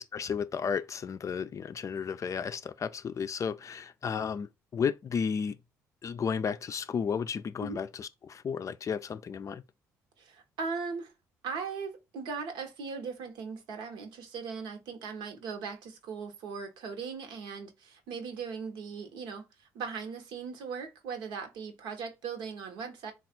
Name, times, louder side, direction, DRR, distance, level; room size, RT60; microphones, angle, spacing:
voice 1, 0.1-5.6 6.0-9.6, left 6 dB, 40° left, 0.4 m, -33 dB
voice 2, 10.2-11.1 11.4-23.1, right 5 dB, 70° right, 1.0 m, -39 dB
3.2 x 2.4 x 4.2 m
hypercardioid pair, 55°, 8 cm